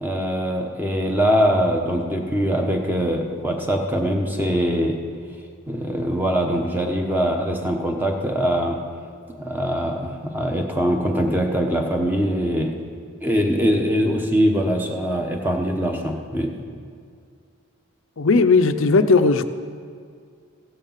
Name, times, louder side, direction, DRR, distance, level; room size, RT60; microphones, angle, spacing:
voice 1, 0.0-5.0 5.7-8.8 9.4-12.7 13.2-16.5, equal, 10° right, 2 dB, 1.0 m, -22 dB
voice 2, 18.2-19.4, left 4 dB, 65° left, 10 dB, 0.6 m, -16 dB
15.5 x 6.5 x 7.4 m, 2.2 s
head